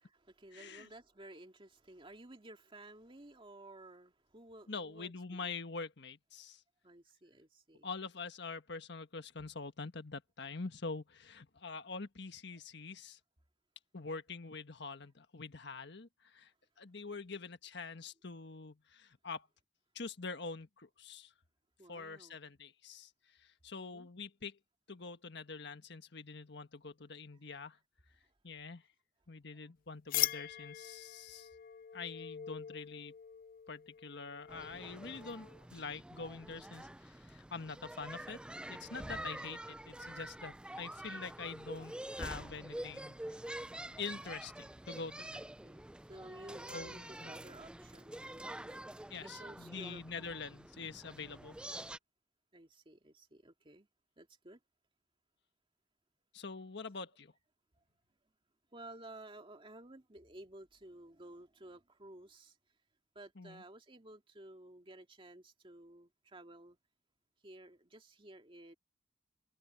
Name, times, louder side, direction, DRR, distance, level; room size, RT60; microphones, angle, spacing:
voice 1, 0.0-5.6 6.8-7.9 21.8-22.4 23.7-24.1 28.2-28.4 29.5-29.7 45.3-48.8 49.2-50.0 52.5-53.9 54.2-54.6 58.7-62.6 63.1-66.8 67.4-68.7, right 1 dB, 30° right, 2.4 m, -54 dB
voice 2, 0.5-0.9 4.7-6.6 7.8-13.2 13.9-16.5 16.8-19.5 19.9-21.3 21.9-24.6 24.9-27.8 28.4-28.8 29.3-31.5 31.9-33.1 33.7-38.4 38.7-43.1 44.0-45.4 46.7-47.3 49.1-51.6 56.3-57.3 63.4-63.6, left 4 dB, 65° left, 1.5 m, -45 dB
sound 1, 30.1-35.7, left 13 dB, 50° left, 0.5 m, -41 dB
sound 2, 34.5-52.0, right 1 dB, 5° right, 0.4 m, -47 dB
head